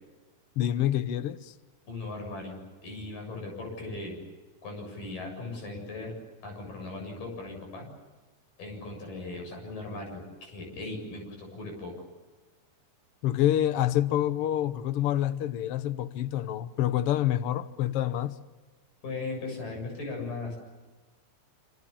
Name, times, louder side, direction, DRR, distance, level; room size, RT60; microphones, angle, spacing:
voice 1, 0.6-1.5 13.2-18.4, left 12 dB, 65° left, 1.5 m, -27 dB
voice 2, 1.9-4.2 4.6-6.2 6.4-7.9 8.6-11.9 19.0-20.6, left 3 dB, 85° left, 9.3 m, -38 dB
27.5 x 26.0 x 7.3 m
omnidirectional pair, 3.8 m